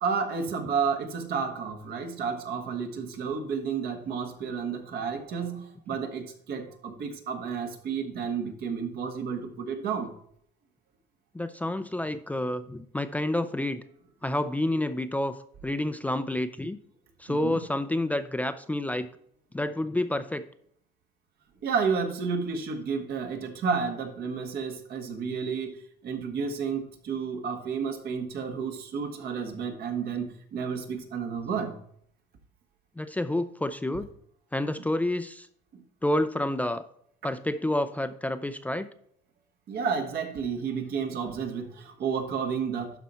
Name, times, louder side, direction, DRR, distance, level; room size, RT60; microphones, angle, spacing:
voice 1, 0.0-10.1 17.3-17.6 21.6-25.7 26.0-31.7 39.7-41.7 42.0-42.9, right 6 dB, 65° right, 5 dB, 1.5 m, -31 dB
voice 2, 11.3-13.8 14.2-15.4 15.6-16.8 17.2-19.1 19.5-20.4 33.0-34.1 34.5-35.5 36.0-36.8 37.2-38.9, left 1 dB, 10° left, 10 dB, 0.4 m, -29 dB
12.0 x 4.2 x 4.3 m, 0.66 s
cardioid pair, 110°, 17 cm